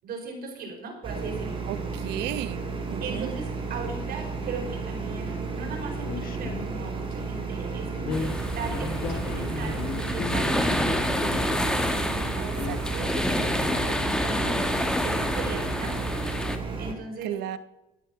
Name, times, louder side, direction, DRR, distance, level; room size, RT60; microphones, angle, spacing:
voice 1, 0.0-1.6 3.0-14.6 15.0-17.4, right 4 dB, 65° right, 1 dB, 5.0 m, -38 dB
sound 1, 1.0-16.9, right 4 dB, 30° right, 3.5 m, -33 dB
voice 2, 1.7-2.6 2.9-3.3 12.7-12.8 17.2-17.6, right 12 dB, 90° right, 13 dB, 1.0 m, -33 dB
sound 2, 6.1-7.0 7.9-11.9 12.4-14.1, left 4 dB, 55° left, 1.3 m, -36 dB
sound 3, 8.1-16.6, left 1 dB, 5° left, 1.3 m, -28 dB
13.5 x 9.2 x 6.0 m, 0.92 s
cardioid pair, 110°, 17 cm